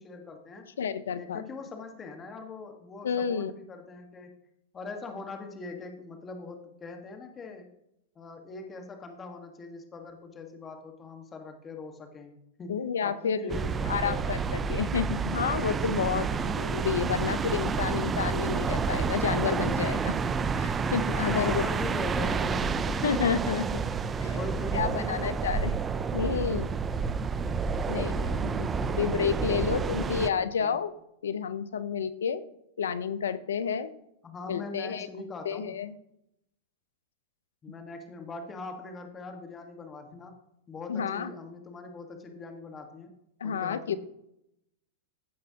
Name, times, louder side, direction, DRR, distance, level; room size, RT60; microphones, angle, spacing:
voice 1, 0.0-0.7 1.2-4.4 4.7-7.7 8.1-12.3 12.6-14.7 16.2-16.6 21.1-23.2 23.6-23.7 24.1-25.7 28.3-30.8 34.2-35.8 37.6-40.4 40.7-43.1 43.4-44.0, left 3 dB, 20° left, 4 dB, 1.4 m, -41 dB
voice 2, 0.8-1.4 3.0-3.5 12.7-13.6 13.9-16.3 16.6-21.6 23.0-23.7 24.2-24.4 24.7-25.7 26.1-26.7 27.9-28.7 29.0-30.9 31.2-32.4 32.8-33.9 34.5-35.1 35.4-35.9 40.9-41.3 43.4-44.0, left 7 dB, 80° left, 15 dB, 0.6 m, -30 dB
sound 1, 13.5-30.3, right 5 dB, 20° right, 0.4 m, -29 dB
15.5 x 5.3 x 2.8 m, 0.80 s
hypercardioid pair, 110°, 0 cm